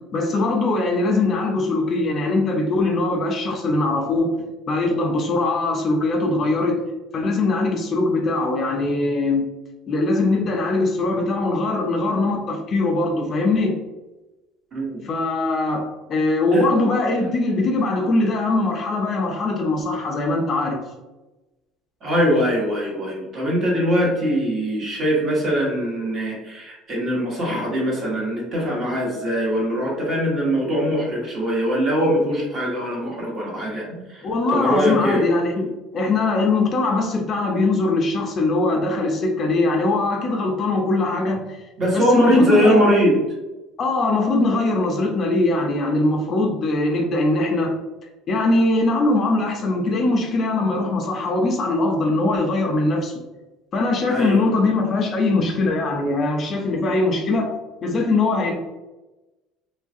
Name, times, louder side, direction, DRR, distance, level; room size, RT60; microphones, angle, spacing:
voice 1, 0.1-4.3 4.7-6.8 7.1-9.5 9.9-13.8 15.0-20.8 34.2-41.6 41.9-42.8 43.8-47.8 48.3-53.1 53.7-57.5 57.8-58.5, left 2 dB, 35° left, 2 dB, 0.4 m, -21 dB
voice 2, 14.7-15.0 16.5-16.7 22.0-35.2 41.8-43.2 54.1-54.5, equal, 35° right, -3 dB, 1.0 m, -21 dB
3.1 x 2.3 x 2.6 m, 1.1 s
cardioid pair, 145°, 0 cm